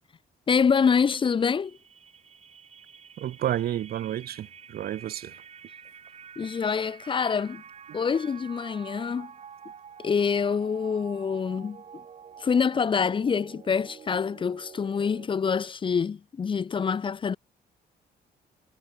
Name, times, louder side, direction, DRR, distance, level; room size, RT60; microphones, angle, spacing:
voice 1, 0.5-1.7 6.4-7.6 7.9-9.3 10.0-11.8 12.4-17.4, left 6 dB, 30° left, 1.1 m, -26 dB
sound 1, 1.3-15.3, right 7 dB, 40° right, 6.1 m, -48 dB
voice 2, 3.2-5.4 7.9-8.0, right 12 dB, 65° right, 2.8 m, -31 dB
cardioid pair, 160°, 17 cm